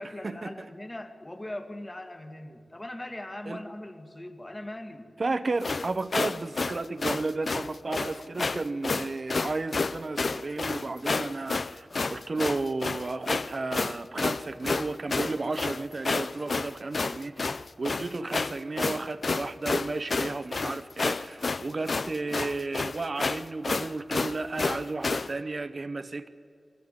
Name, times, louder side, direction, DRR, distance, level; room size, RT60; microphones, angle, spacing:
voice 1, 0.0-5.1, left 1 dB, 25° left, 6 dB, 2.0 m, -40 dB
voice 2, 5.2-26.3, right 3 dB, 50° right, 11 dB, 0.8 m, -33 dB
sound 1, 5.6-25.3, left 3 dB, 55° left, 0.5 m, -30 dB
22.0 x 15.0 x 9.5 m, 2.6 s
wide cardioid pair, 65°, 0 cm